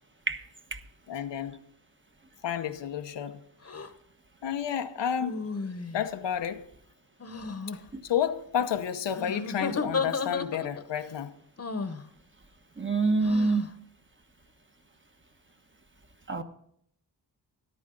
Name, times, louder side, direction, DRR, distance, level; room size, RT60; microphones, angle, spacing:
voice 1, 1.1-1.6 2.4-3.4 4.4-5.4 5.9-6.7 7.7-11.3, left 9 dB, 90° left, 0.9 m, -31 dB
sound 1, 3.6-3.9 5.2-6.1 7.2-7.8 9.1-10.9 11.6-12.0 13.2-13.7, left 4 dB, 35° left, 1.1 m, -33 dB
voice 2, 12.8-13.6 16.3-16.4, right 3 dB, 30° right, 1.3 m, -25 dB
13.5 x 11.0 x 3.9 m
cardioid pair, 65°, 42 cm